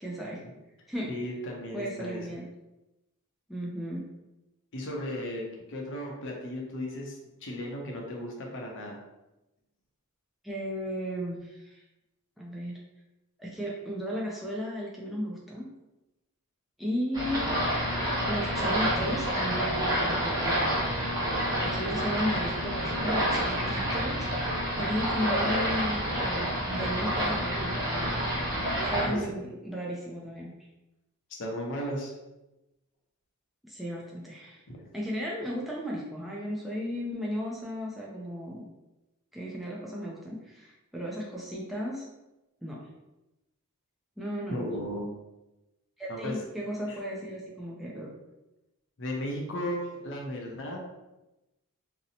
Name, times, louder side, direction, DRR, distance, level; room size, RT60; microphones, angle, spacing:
voice 1, 0.0-0.4 0.9-1.1 1.7-2.5 3.5-4.1 10.4-11.8 12.4-12.8 13.4-15.7 16.8-17.5 18.3-20.6 21.6-28.2 28.9-30.5 33.7-34.6 34.9-38.7 39.3-42.1 42.6-42.9 44.2-44.7 46.0-48.1, equal, ahead, -5 dB, 0.3 m, -35 dB
voice 2, 1.1-2.2 4.7-9.0 29.0-29.3 31.4-32.1 34.7-34.8 44.5-45.1 46.1-46.4 46.9-47.0 49.0-50.8, equal, 60° left, 0 dB, 0.6 m, -35 dB
sound 1, 17.1-29.1, equal, 15° right, 0.8 m, -28 dB
2.6 x 2.0 x 2.7 m, 0.98 s
head